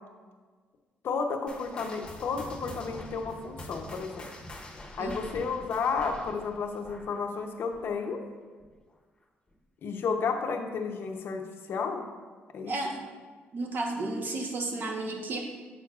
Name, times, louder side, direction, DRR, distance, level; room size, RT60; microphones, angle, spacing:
voice 1, 1.0-4.3 5.0-8.2 9.8-11.4 11.7-12.0 12.5-12.7, left 5 dB, 65° left, 4 dB, 0.7 m, -32 dB
sound 1, 1.5-8.3 8.6-8.9 9.5-9.6 10.4-10.5, left 1 dB, 20° left, 0.9 m, -45 dB
voice 2, 12.7-13.0 13.5-15.4, right 2 dB, 50° right, 1 dB, 1.0 m, -32 dB
7.3 x 6.2 x 2.4 m, 1.4 s
cardioid pair, 80°, 4 cm